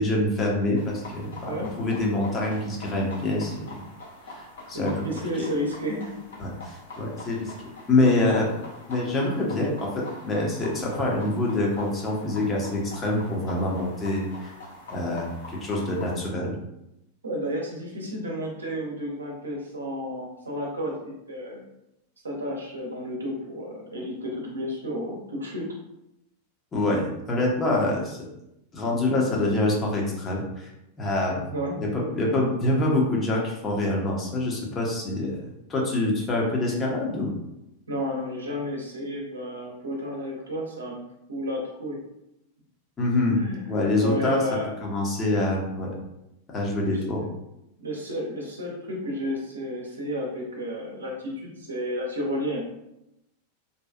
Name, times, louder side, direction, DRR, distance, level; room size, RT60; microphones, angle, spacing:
voice 1, 0.0-3.8 4.3-5.0 5.4-5.5 6.4-8.5 8.9-9.9 10.2-14.5 14.9-16.5 26.7-28.2 28.7-30.7 31.0-31.4 31.8-37.3 43.0-43.4 43.7-44.4 44.8-45.9 46.5-47.2, left 2 dB, 20° left, -2 dB, 0.7 m, -25 dB
sound 1, 0.7-16.1, left 1 dB, 65° left, 0.7 m, -44 dB
voice 2, 4.7-6.1 17.2-21.0 21.3-21.6 22.2-25.7 31.3-31.8 37.9-41.0 41.3-42.0 43.4-44.7 46.8-47.2 47.8-52.6, equal, 75° right, -2 dB, 0.6 m, -32 dB
2.7 x 2.3 x 2.3 m, 0.86 s
figure-of-eight pair, 90°, 0 cm